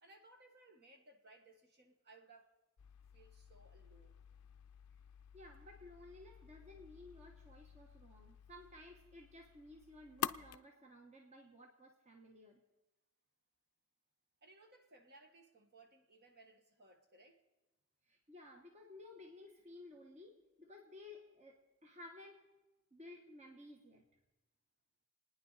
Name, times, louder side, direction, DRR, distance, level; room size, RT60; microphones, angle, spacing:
voice 1, 0.0-2.5 3.1-4.2 14.4-17.4, right 2 dB, 50° right, 4 dB, 1.6 m, -63 dB
sound 1, 2.8-10.6, left 9 dB, 80° left, 0.5 m, -49 dB
voice 2, 5.3-12.6 18.1-22.5 22.9-24.0, left 2 dB, 30° right, 1 dB, 1.3 m, -56 dB
29.0 x 9.9 x 4.1 m, 1.0 s
head